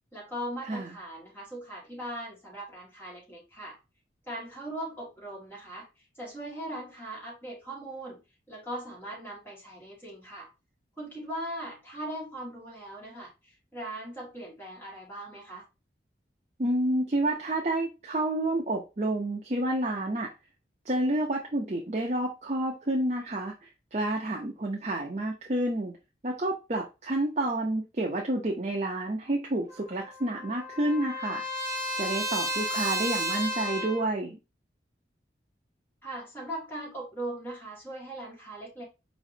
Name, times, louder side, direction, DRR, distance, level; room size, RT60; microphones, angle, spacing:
voice 1, 0.1-3.8 4.3-5.9 6.2-8.2 8.5-10.5 11.0-15.6 36.0-38.8, right 1 dB, 10° left, 1.9 m, -39 dB
voice 2, 16.6-20.3 20.9-25.9 26.2-31.4 32.0-34.4, right 1 dB, 35° right, 0.6 m, -29 dB
Trumpet, 29.7-34.1, equal, 15° right, 1.1 m, -32 dB
4.9 x 3.1 x 2.7 m
head